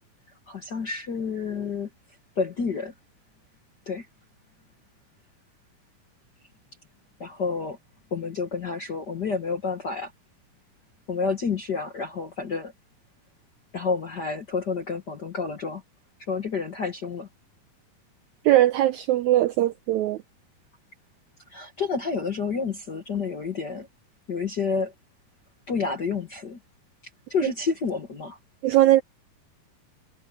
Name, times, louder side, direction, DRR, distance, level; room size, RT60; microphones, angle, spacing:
voice 1, 0.5-1.9 2.4-2.9 3.9-4.0 7.2-7.8 8.1-10.1 11.1-12.7 13.7-15.8 16.3-17.3 21.5-23.9 24.3-24.9 25.7-26.6 27.3-28.4, left 5 dB, 50° left, 1.3 m, -29 dB
voice 2, 18.4-20.2 28.6-29.0, right 14 dB, 80° right, 1.7 m, -20 dB
omnidirectional pair, 4.0 m